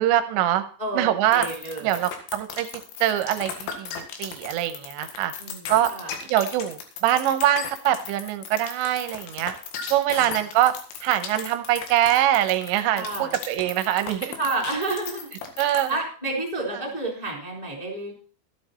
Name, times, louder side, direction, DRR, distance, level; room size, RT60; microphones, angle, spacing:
voice 1, 0.0-0.6 0.9-1.5 1.8-2.7 3.0-5.3 5.7-5.9 6.3-9.5 9.9-10.7 11.0-14.4 15.6-16.0, right 12 dB, 80° right, 10 dB, 2.8 m, -23 dB
voice 2, 0.8-2.0 5.4-6.1 10.1-10.3 12.9-13.3 14.4-15.3 15.9-18.1, right 2 dB, 10° left, -1 dB, 2.3 m, -30 dB
sound 1, 1.3-16.0, left 7 dB, 75° left, 4.3 m, -36 dB
13.0 x 10.5 x 4.3 m, 0.41 s
omnidirectional pair, 5.8 m